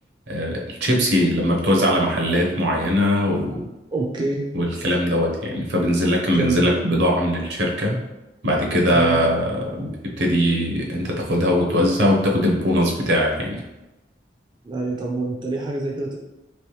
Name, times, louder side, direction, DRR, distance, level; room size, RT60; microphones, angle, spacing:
voice 1, 0.3-3.6 4.5-8.0 8.4-13.6, equal, 75° right, -1 dB, 0.8 m, -21 dB
voice 2, 3.9-4.4 6.4-6.7 8.9-9.2 14.6-16.2, right 3 dB, 25° right, -2 dB, 0.4 m, -26 dB
3.2 x 3.0 x 3.1 m, 1.0 s
head